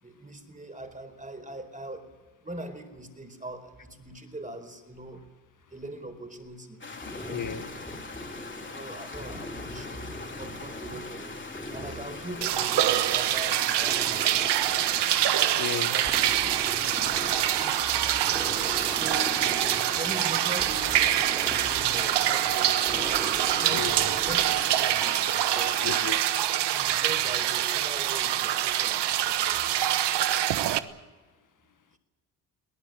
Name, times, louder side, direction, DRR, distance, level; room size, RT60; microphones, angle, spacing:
voice 1, 0.0-2.1 2.4-5.2 5.7-6.8 7.1-7.6 8.7-10.0 10.3-11.3 11.7-14.6 15.9-16.1 18.9-19.4 19.9-23.8 24.1-25.2 25.5-25.9 26.7-29.6, right 1 dB, 20° right, 8 dB, 4.6 m, -41 dB
sound 1, 6.8-26.0, left 3 dB, 30° left, 3.5 m, -41 dB
sound 2, 7.0-25.1, equal, 10° left, 4.3 m, -41 dB
voice 2, 7.3-7.6 15.6-16.0 23.7-23.9 25.8-26.3, left 7 dB, 50° left, 8 dB, 1.7 m, -33 dB
sound 3, 12.4-30.8, right 12 dB, 80° right, 1.3 m, -25 dB
22.5 x 18.5 x 9.0 m, 1.3 s
cardioid pair, 75°, 41 cm